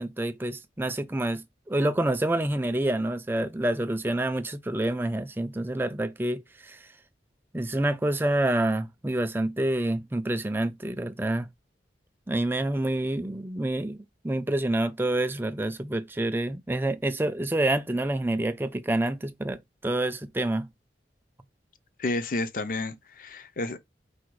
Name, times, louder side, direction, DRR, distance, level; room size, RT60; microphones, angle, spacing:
voice 1, 0.0-6.9 7.5-11.5 12.3-20.7, right 1 dB, 10° right, 0.4 m, -28 dB
voice 2, 22.0-23.8, left 2 dB, 50° left, 0.5 m, -31 dB
4.8 x 2.3 x 4.6 m
head